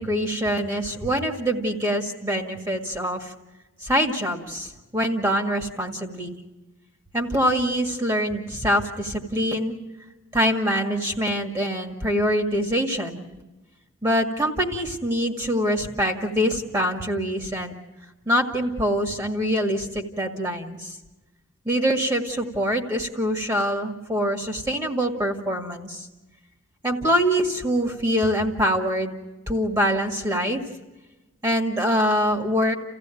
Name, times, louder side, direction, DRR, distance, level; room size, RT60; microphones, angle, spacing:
voice 1, 0.0-3.3 3.8-6.4 7.1-9.8 10.3-13.3 14.0-17.7 18.3-21.0 21.7-26.1 26.8-29.1 29.5-30.6 31.4-32.8, equal, 15° right, 4 dB, 1.9 m, -24 dB
30.0 x 15.5 x 9.1 m, 1.1 s
head